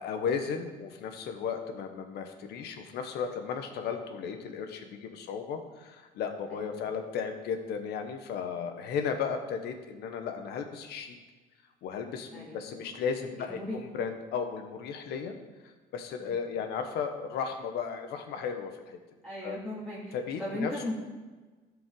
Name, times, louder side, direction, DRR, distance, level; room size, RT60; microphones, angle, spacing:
voice 1, 0.0-11.2 11.8-15.3 15.6-19.0 19.4-19.6 20.1-20.9, left 6 dB, 80° left, 6 dB, 1.2 m, -35 dB
voice 2, 19.2-20.1 20.4-20.9, left 1 dB, 5° left, -10 dB, 2.6 m, -36 dB
13.0 x 5.3 x 4.8 m, 1.3 s
cardioid pair, 110°, 17 cm